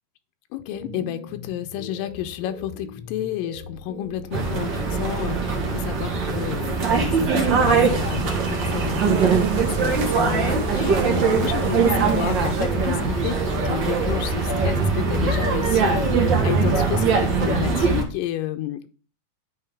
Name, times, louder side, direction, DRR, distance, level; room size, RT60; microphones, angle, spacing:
voice 1, 0.5-18.9, left 12 dB, 90° left, 8 dB, 2.3 m, -31 dB
sound 1, 0.7-17.5, left 2 dB, 50° left, 3.3 m, -38 dB
sound 2, 4.3-18.0, right 4 dB, 55° right, 1.3 m, -22 dB
sound 3, 7.6-12.6, right 10 dB, 75° right, 2.0 m, -31 dB
10.5 x 3.7 x 3.3 m, 0.37 s
omnidirectional pair, 3.9 m